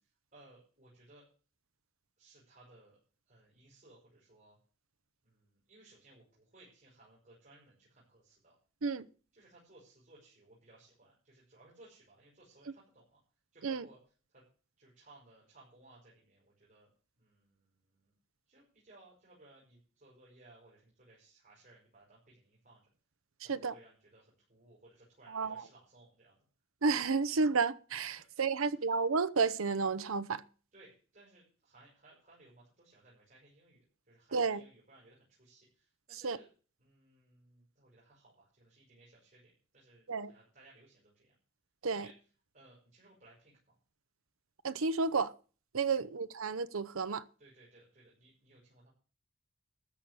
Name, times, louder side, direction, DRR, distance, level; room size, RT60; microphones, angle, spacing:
voice 1, 0.0-1.3 2.2-3.0 3.3-4.6 5.2-8.5 9.3-13.2 13.5-14.0 14.3-14.4 14.8-16.9 17.2-18.1 18.5-22.8 23.4-26.4 28.2-28.3 28.6-28.8 30.7-36.5 36.8-41.3 41.9-42.1 42.5-43.8 46.0-46.1 47.4-48.9, right 2 dB, 40° right, 6.2 m, -61 dB
voice 2, 25.3-25.6 26.8-30.4 34.3-34.6 36.1-36.4 40.1-40.3 41.8-42.1 44.6-45.3 45.7-47.2, right 4 dB, 90° right, 0.8 m, -31 dB
13.5 x 6.3 x 8.3 m
head